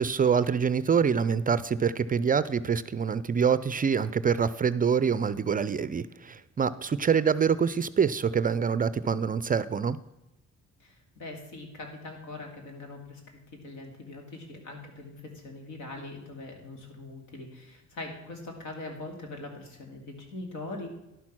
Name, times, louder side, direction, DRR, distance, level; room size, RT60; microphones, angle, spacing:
voice 1, 0.0-10.0, right 6 dB, 30° right, 16 dB, 0.4 m, -25 dB
voice 2, 10.8-13.2 13.5-20.9, left 2 dB, 80° left, 2 dB, 2.5 m, -42 dB
11.0 x 6.1 x 6.0 m, 0.97 s
cardioid pair, 90°, 30 cm